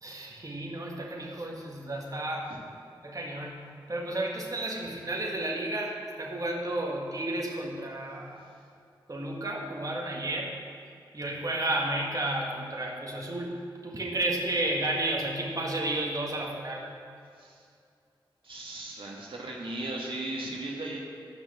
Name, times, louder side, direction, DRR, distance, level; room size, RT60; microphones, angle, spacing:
voice 1, 0.0-2.5 3.0-3.6 3.9-8.4 9.1-10.6 11.1-16.9, right 1 dB, 40° right, -1 dB, 1.7 m, -32 dB
voice 2, 18.4-21.0, right 2 dB, 70° right, -3 dB, 1.7 m, -37 dB
10.0 x 6.1 x 7.1 m, 2.3 s
cardioid pair, 40°, 9 cm